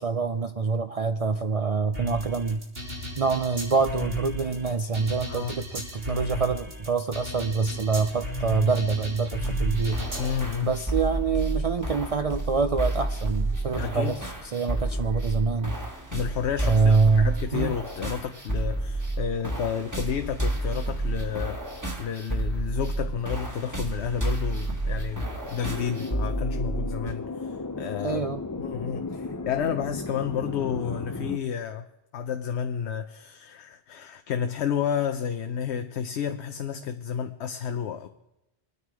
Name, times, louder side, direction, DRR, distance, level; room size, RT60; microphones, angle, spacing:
voice 1, 0.0-2.6 3.2-10.0 10.6-15.7 16.6-17.7 28.0-28.4, right 4 dB, 45° right, 0.5 m, -25 dB
sound 1, 1.9-10.5, left 1 dB, 65° right, 3.6 m, -35 dB
sound 2, 9.4-27.1, right 2 dB, 15° right, 1.8 m, -30 dB
voice 2, 10.2-10.7 13.8-14.2 16.1-21.6 22.0-28.2 28.6-31.9 32.1-38.1, left 8 dB, 85° left, 1.0 m, -31 dB
sound 3, 25.6-31.4, left 3 dB, 25° left, 0.4 m, -35 dB
23.0 x 9.6 x 4.7 m
omnidirectional pair, 1.1 m